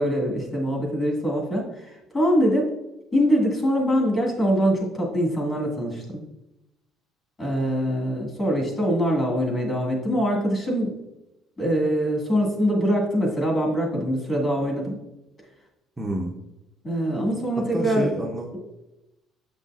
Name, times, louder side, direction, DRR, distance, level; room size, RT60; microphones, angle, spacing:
voice 1, 0.0-2.6 3.1-6.2 7.4-10.9 11.6-15.0 16.8-18.1, equal, 25° left, -2 dB, 1.8 m, -23 dB
voice 2, 16.0-16.3 17.7-18.6, right 1 dB, 10° right, -1 dB, 0.6 m, -28 dB
7.8 x 5.6 x 2.4 m, 0.93 s
cardioid pair, 160°, 0 cm